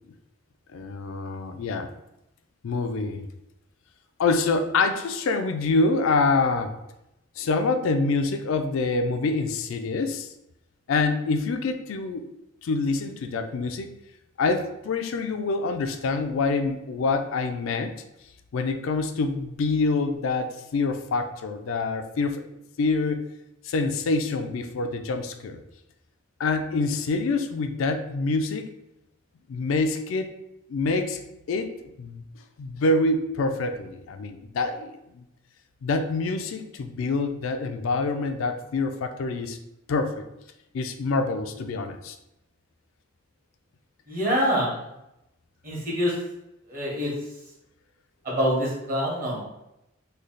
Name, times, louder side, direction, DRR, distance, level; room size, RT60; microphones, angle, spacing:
voice 1, 0.7-1.9 2.6-3.2 4.2-6.7 7.4-10.3 10.9-12.3 12.6-13.9 14.4-17.9 18.5-22.4 22.8-23.2 23.6-25.6 26.4-28.7 29.5-30.3 30.7-31.2 31.5-31.7 32.0-32.2 32.6-35.2 35.8-39.6 39.9-40.3 40.7-42.1, left 3 dB, 75° left, 7 dB, 0.4 m, -26 dB
voice 2, 44.1-44.8 45.6-46.1 46.7-47.1 48.2-49.4, equal, 45° right, -3 dB, 1.3 m, -25 dB
3.2 x 2.3 x 3.8 m, 0.87 s
head